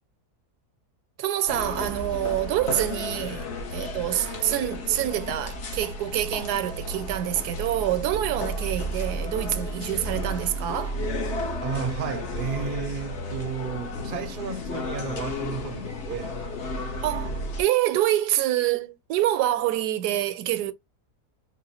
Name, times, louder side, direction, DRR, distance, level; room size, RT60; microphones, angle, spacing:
voice 1, 1.2-11.0 17.0-17.3 17.6-20.7, right 13 dB, 80° right, 1.1 m, -26 dB
sound 1, 1.5-17.6, left 1 dB, 50° left, 1.0 m, -33 dB
voice 2, 11.6-16.4, right 6 dB, 50° right, 0.6 m, -33 dB
3.8 x 2.1 x 4.1 m
omnidirectional pair, 1.7 m